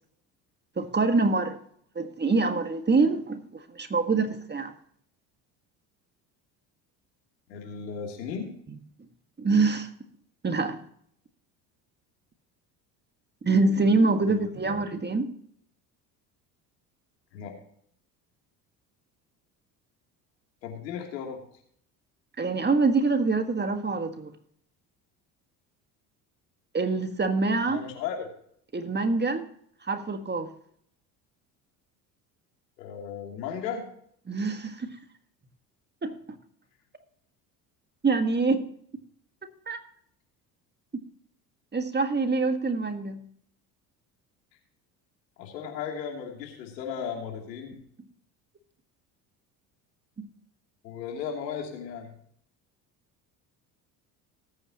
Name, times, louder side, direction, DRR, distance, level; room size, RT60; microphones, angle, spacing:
voice 1, 0.8-1.6 2.0-4.7 9.4-9.9 10.4-10.8 13.4-15.3 22.4-24.3 26.7-27.8 28.7-29.5 29.9-30.5 34.3-35.0 36.0-36.2 38.0-38.6 39.7-39.8 41.7-43.2 50.2-50.3, right 3 dB, 20° right, 1.6 m, -25 dB
voice 2, 7.5-8.5 14.3-14.7 17.3-17.5 20.6-21.4 27.7-28.3 32.8-33.9 45.4-47.8 50.8-52.1, left 7 dB, 85° left, 3.0 m, -35 dB
19.5 x 8.5 x 2.9 m
hypercardioid pair, 65°, 49 cm